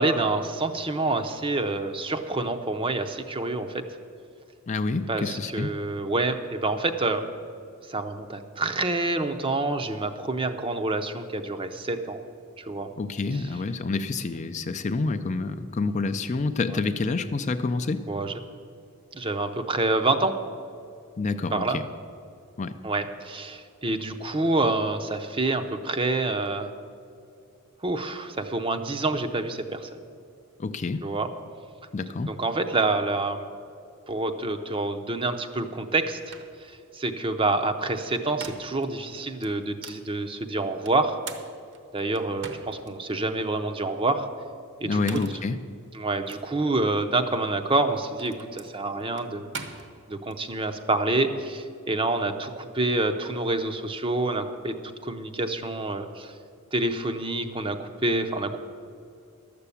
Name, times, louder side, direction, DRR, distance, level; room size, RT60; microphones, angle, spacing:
voice 1, 0.0-3.8 5.1-7.3 7.9-12.2 12.6-12.9 13.3-13.5 18.1-18.4 19.1-20.4 21.5-21.8 22.8-26.7 27.8-29.9 31.0-31.3 32.3-33.4 34.1-36.2 36.6-41.2 41.9-44.3 44.8-45.2 45.9-49.5 50.1-56.3 56.7-58.6, right 2 dB, 25° right, 7 dB, 0.6 m, -27 dB
voice 2, 4.7-5.7 13.0-18.0 21.2-21.8 22.6-22.8 30.6-31.1 31.9-32.4 44.8-45.6, left 3 dB, 30° left, 9 dB, 0.4 m, -28 dB
sound 1, 35.9-36.0 36.3-36.6 38.0-38.9 39.4-40.1 40.9-42.9 43.4-43.5 44.8-45.5 46.3-46.4 47.7-50.4, right 5 dB, 55° right, 0.9 m, -42 dB
12.5 x 6.8 x 8.4 m, 2.4 s
head